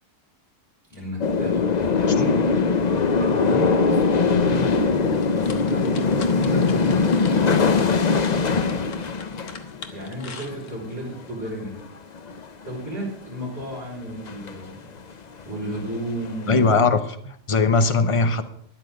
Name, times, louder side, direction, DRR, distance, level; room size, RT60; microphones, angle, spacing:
voice 1, 0.9-2.4 3.1-9.0 9.9-11.7 12.6-14.7 15.4-16.7, equal, 10° right, -8 dB, 5.3 m, -33 dB
sound 1, 1.2-10.7 11.0-11.3 11.6-11.9 12.1-12.9 13.6-13.8 14.1-14.7 15.1-15.2 15.4-16.7, left 4 dB, 85° left, 0.3 m, -22 dB
sound 2, 5.1-11.0, left 5 dB, 60° left, 1.7 m, -42 dB
voice 2, 16.5-18.4, left 4 dB, 25° left, 8 dB, 0.7 m, -20 dB
13.5 x 10.0 x 5.3 m, 0.70 s
omnidirectional pair, 1.8 m